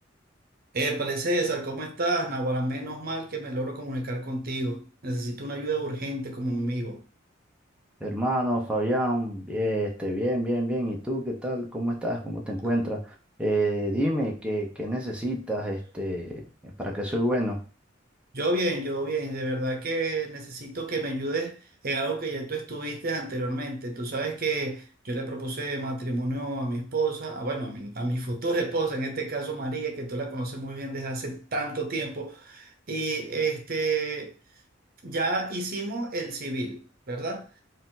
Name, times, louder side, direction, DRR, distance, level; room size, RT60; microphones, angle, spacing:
voice 1, 0.7-7.0 18.3-21.6 21.8-34.3 35.0-37.5, right 2 dB, 50° right, 0.9 m, -30 dB
voice 2, 8.0-17.6, equal, 5° right, 0.8 m, -28 dB
4.8 x 2.6 x 3.8 m
head